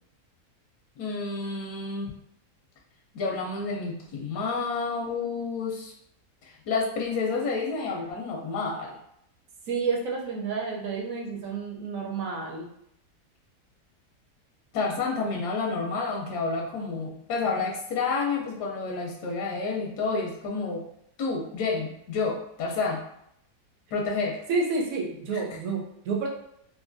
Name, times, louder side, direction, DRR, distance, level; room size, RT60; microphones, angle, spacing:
voice 1, 1.0-2.1 3.1-5.9 6.7-8.9 14.7-20.8 21.2-23.0 23.9-24.4, left 4 dB, 85° left, -1 dB, 1.2 m, -29 dB
voice 2, 9.7-12.7 24.5-26.3, right 4 dB, 65° right, -1 dB, 1.0 m, -30 dB
3.1 x 2.6 x 2.5 m, 0.75 s
omnidirectional pair, 1.7 m